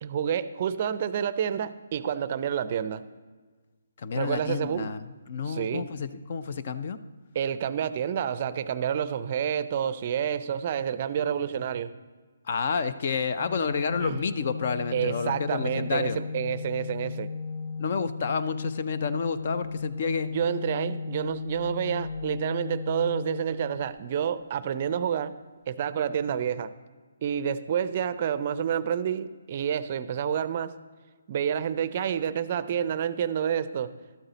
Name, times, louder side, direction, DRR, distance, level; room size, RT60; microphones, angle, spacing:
voice 1, 0.0-3.1 4.1-4.9 5.4-5.9 7.3-11.9 14.0-14.2 14.9-17.3 20.2-25.4 25.7-26.7 27.2-30.8 31.3-33.9, right 8 dB, 40° right, 15 dB, 0.4 m, -29 dB
voice 2, 4.0-7.0 12.5-16.2 17.8-20.3, left 5 dB, 50° left, 12 dB, 0.5 m, -30 dB
Organ, 13.4-24.3, left 4 dB, 20° left, 1.2 m, -36 dB
12.0 x 8.1 x 4.0 m, 1.4 s
hypercardioid pair, 155°, 0 cm